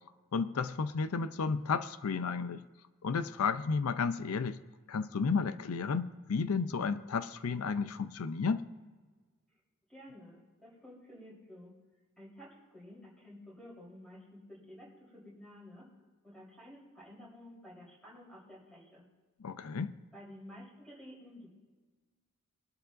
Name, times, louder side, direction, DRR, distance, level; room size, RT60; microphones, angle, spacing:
voice 1, 0.3-2.6 3.0-4.6 4.9-8.7 19.4-19.9, left 5 dB, 85° left, 0.5 m, -32 dB
voice 2, 9.9-11.7 12.2-15.9 16.2-19.0 20.1-21.5, left 1 dB, 5° left, 3.8 m, -52 dB
21.0 x 11.5 x 2.6 m
head